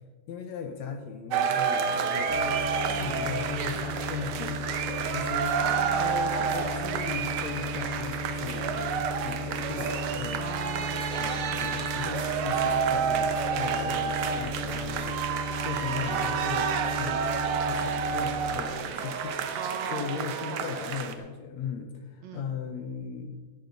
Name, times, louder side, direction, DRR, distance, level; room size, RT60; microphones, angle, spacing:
voice 1, 0.3-5.6 6.0-10.5 11.2-15.2 15.6-17.3 17.6-23.4, left 6 dB, 70° left, 7 dB, 1.9 m, -38 dB
sound 1, 1.3-21.1, right 7 dB, 90° right, 1.2 m, -29 dB
sound 2, 2.3-18.5, left 1 dB, 55° left, 4.3 m, -36 dB
voice 2, 2.9-3.3 5.5-6.1 10.4-11.7 19.6-20.7 22.2-22.6, right 6 dB, 70° right, 6 dB, 2.1 m, -40 dB
sound 3, 4.9-5.6 6.0-6.7 7.2-7.4 8.1-8.7 9.3-10.0 10.5-13.9 14.2-15.2 16.1-16.5 16.9-17.1, right 1 dB, 25° right, 3.1 m, -47 dB
15.5 x 11.0 x 4.0 m, 1.5 s
omnidirectional pair, 3.7 m